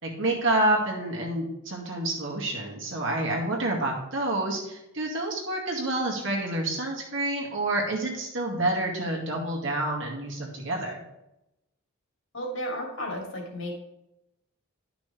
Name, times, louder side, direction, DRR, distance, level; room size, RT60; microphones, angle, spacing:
voice 1, 0.0-11.0, right 1 dB, 60° right, -1 dB, 2.2 m, -28 dB
voice 2, 12.3-13.8, equal, 60° left, 0 dB, 2.8 m, -33 dB
12.0 x 6.0 x 3.4 m, 0.88 s
head